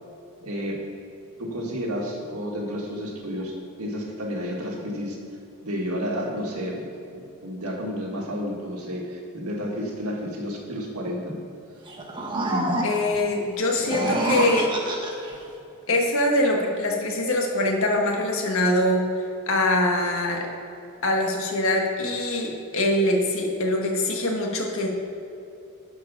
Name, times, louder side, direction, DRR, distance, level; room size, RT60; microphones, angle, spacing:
voice 1, 0.4-0.8 1.4-3.5 3.8-5.2 5.6-11.3, equal, 90° right, -1 dB, 1.7 m, -31 dB
sound 1, 11.9-13.2 13.7-15.4, right 1 dB, 20° right, 1.2 m, -27 dB
voice 2, 12.8-14.7 15.9-20.5 21.0-24.9, left 1 dB, 65° left, 1 dB, 1.6 m, -23 dB
11.0 x 4.9 x 6.0 m, 2.8 s
head